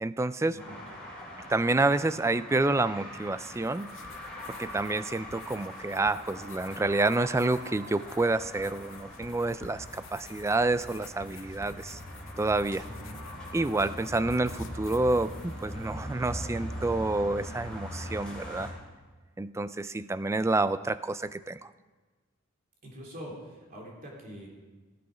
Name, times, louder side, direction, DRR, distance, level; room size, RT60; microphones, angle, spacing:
voice 1, 0.0-0.6 1.5-3.9 4.5-12.0 12.4-12.9 13.5-18.7 19.4-21.7, right 2 dB, 15° right, 14 dB, 0.3 m, -28 dB
voice 2, 0.5-0.8 12.8-13.2 22.8-24.5, equal, 45° right, -2 dB, 3.0 m, -44 dB
sound 1, 0.6-18.7, equal, 5° left, 3.6 m, -42 dB
sound 2, 3.2-15.9, left 5 dB, 65° left, 0.9 m, -52 dB
16.0 x 8.5 x 5.1 m, 1.3 s
head